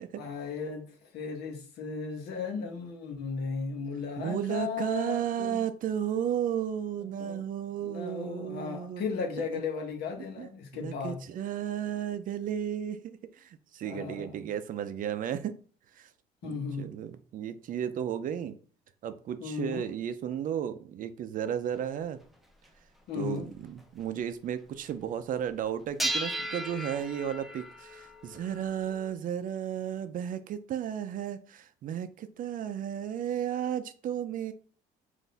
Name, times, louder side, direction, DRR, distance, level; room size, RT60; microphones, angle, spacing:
voice 1, 0.1-5.6 7.0-7.4 7.8-11.2 13.8-14.5 16.4-16.9 19.4-19.9 23.1-23.5, left 5 dB, 75° left, 1.1 m, -36 dB
voice 2, 4.2-9.0 10.4-10.5 10.7-13.0 13.3-15.6 16.0-16.1 16.4-18.6 19.0-22.2 23.2-34.5, right 9 dB, 55° right, 0.5 m, -34 dB
sound 1, 21.7-21.8 22.6-22.7 23.2-23.3 23.8-24.0 26.0-29.1, right 1 dB, ahead, 0.6 m, -36 dB
3.9 x 2.6 x 3.9 m
cardioid pair, 110°, 17 cm